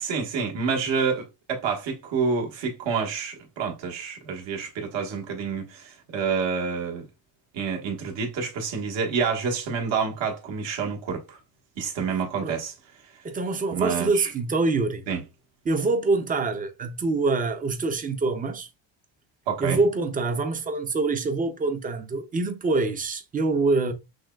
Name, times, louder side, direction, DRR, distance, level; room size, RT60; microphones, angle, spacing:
voice 1, 0.0-7.0 7.5-11.4 11.8-12.7 13.7-14.3 15.1-15.2 19.5-19.8, right 5 dB, 65° right, 1.4 m, -28 dB
voice 2, 13.2-15.0 15.6-18.7 19.6-23.9, right 3 dB, 20° right, 0.4 m, -25 dB
6.2 x 2.2 x 2.3 m
cardioid pair, 140°, 49 cm